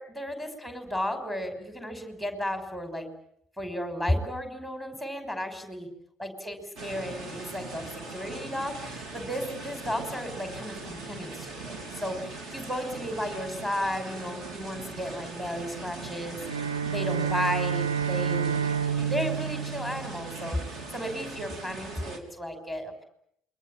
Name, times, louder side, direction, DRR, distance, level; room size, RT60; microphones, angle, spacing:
voice 1, 0.0-3.1 3.6-5.9 6.2-18.6 19.0-23.0, equal, 5° right, 6 dB, 6.1 m, -34 dB
sound 1, 6.8-22.2, right 3 dB, 45° right, 4.1 m, -40 dB
Bowed string instrument, 16.4-20.8, right 7 dB, 80° right, 0.9 m, -29 dB
28.0 x 23.5 x 7.5 m, 0.73 s
figure-of-eight pair, 55°, 0 cm